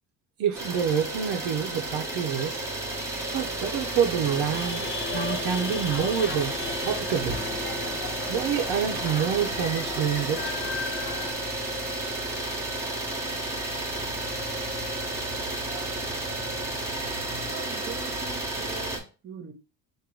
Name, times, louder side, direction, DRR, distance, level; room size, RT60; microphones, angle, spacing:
voice 1, 0.4-2.6 3.3-6.5 6.8-7.4 8.3-10.6, right 8 dB, 60° right, 0.7 m, -27 dB
Idling, 0.5-19.0, right 2 dB, 10° right, 1.0 m, -32 dB
sound 1, 4.1-11.3, left 5 dB, 30° left, 0.6 m, -36 dB
voice 2, 17.3-19.5, right 7 dB, 30° right, 1.0 m, -42 dB
3.8 x 2.6 x 4.6 m
cardioid pair, 140°, 38 cm